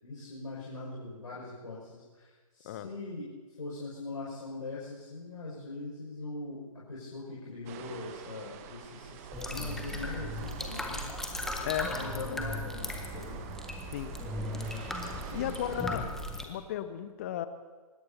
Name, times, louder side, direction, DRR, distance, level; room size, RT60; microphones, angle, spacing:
voice 1, 0.0-13.4 15.2-16.1, left 2 dB, 60° left, -5 dB, 6.0 m, -42 dB
sound 1, 7.7-15.9, right 8 dB, 25° right, 1.0 m, -48 dB
sound 2, 9.3-16.4, left 1 dB, ahead, 1.0 m, -37 dB
voice 2, 15.3-16.0 16.5-17.5, left 11 dB, 25° left, 12 dB, 0.6 m, -34 dB
24.5 x 20.5 x 2.8 m, 1.4 s
figure-of-eight pair, 135°, 19 cm